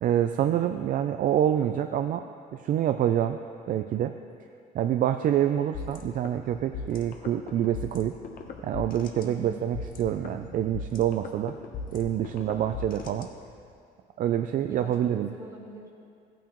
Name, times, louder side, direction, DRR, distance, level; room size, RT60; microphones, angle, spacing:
voice 1, 0.0-3.4 3.7-4.1 4.7-8.1 8.6-11.6 11.9-13.3 14.2-15.3, right 10 dB, 55° right, 8 dB, 0.4 m, -26 dB
sound 1, 5.7-13.7, left 5 dB, 55° left, 1.0 m, -40 dB
voice 2, 9.2-9.6 14.7-15.9, right 2 dB, 20° right, -1 dB, 1.9 m, -43 dB
15.0 x 9.0 x 3.0 m, 2.4 s
cardioid pair, 110°, 17 cm